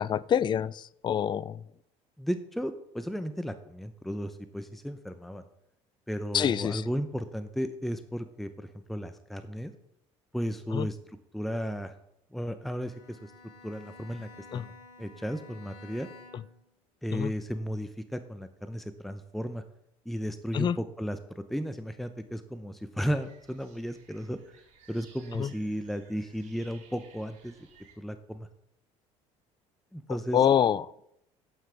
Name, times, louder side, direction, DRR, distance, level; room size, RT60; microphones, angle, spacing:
voice 1, 0.0-1.6 6.3-6.8 10.7-10.9 14.5-14.6 17.1-17.3 20.5-20.8 25.4-25.5 30.3-30.9, left 9 dB, 30° left, 0.3 m, -26 dB
voice 2, 2.2-5.4 6.1-9.7 10.3-11.9 12.3-13.3 13.6-14.7 15.0-16.1 17.0-19.6 20.1-24.4 24.9-27.6 28.0-28.5 29.9-30.5, equal, ahead, 0.7 m, -34 dB
Bowed string instrument, 12.6-16.7, left 3 dB, 65° left, 2.8 m, -52 dB
sound 1, 23.0-27.9, right 5 dB, 60° right, 4.0 m, -58 dB
14.5 x 5.8 x 3.4 m
supercardioid pair, 75°, 15 cm